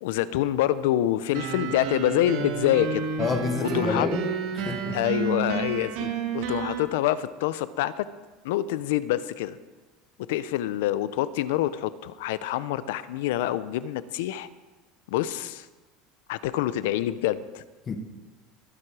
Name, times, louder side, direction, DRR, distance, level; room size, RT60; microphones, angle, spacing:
voice 1, 0.0-3.0 3.6-4.1 4.9-8.0 8.4-9.6 10.3-14.5 15.1-15.6 16.3-17.6, left 13 dB, 80° left, 15 dB, 0.6 m, -26 dB
sound 1, 1.3-6.8, right 6 dB, 55° right, 1.2 m, -30 dB
voice 2, 3.2-5.0 17.9-18.0, left 4 dB, 20° left, 7 dB, 1.0 m, -29 dB
21.0 x 7.7 x 4.8 m, 1.2 s
cardioid pair, 175°, 0 cm